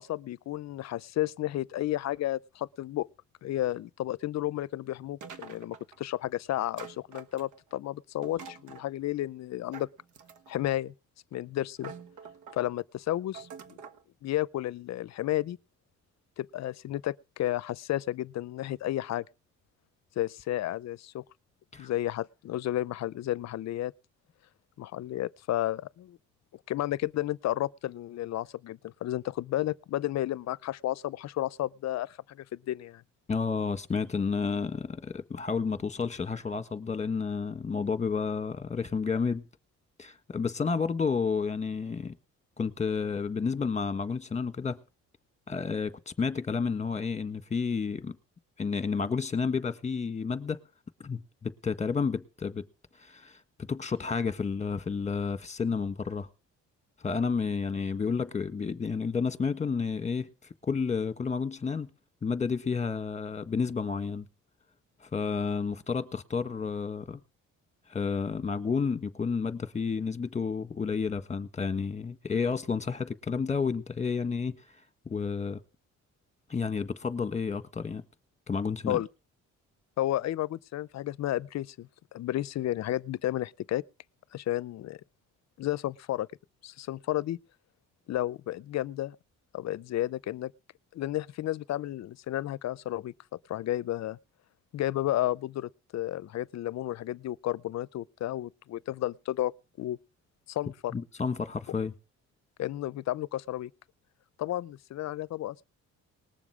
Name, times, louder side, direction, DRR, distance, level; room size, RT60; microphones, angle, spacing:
voice 1, 0.0-3.1 3.4-9.9 10.5-10.9 11.3-11.9 12.5-13.5 14.2-15.6 16.4-19.2 20.2-21.2 21.8-23.9 24.8-26.2 26.7-33.0 78.9-79.1 80.0-83.8 84.3-85.0 85.6-86.3 86.6-87.4 88.1-89.2 89.5-90.5 90.9-94.2 94.7-99.5 99.8-100.0 100.5-100.9 102.6-103.7 104.4-105.6, left 14 dB, 60° left, 0.6 m, -32 dB
sound 1, 5.2-6.0 6.8-7.7 8.2-8.9 9.7-10.7 11.3-11.4 11.8-12.7 13.3-14.0, right 6 dB, 75° right, 1.5 m, -46 dB
voice 2, 33.3-39.4 40.0-42.1 42.6-44.8 45.5-48.2 48.6-50.6 51.0-52.6 53.0-56.3 57.0-60.3 60.6-61.9 62.2-64.3 65.0-67.2 67.9-74.6 75.0-75.6 76.5-78.0 78.5-79.0 100.9-101.9, left 5 dB, 25° left, 1.5 m, -31 dB
20.0 x 7.1 x 4.9 m
cardioid pair, 90°, 30 cm